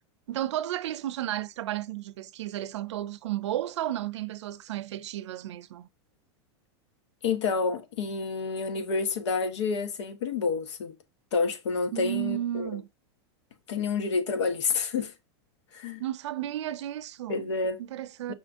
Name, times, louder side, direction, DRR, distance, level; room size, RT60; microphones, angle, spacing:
voice 1, 0.3-5.9 11.9-12.9 16.0-17.4 17.8-18.3, right 12 dB, 85° right, 0.5 m, -33 dB
voice 2, 7.2-11.0 11.3-12.7 13.7-15.1 15.7-16.0 17.3-17.8 18.3-18.4, left 4 dB, 85° left, 1.1 m, -29 dB
5.6 x 2.6 x 3.5 m
supercardioid pair, 160°, 15 cm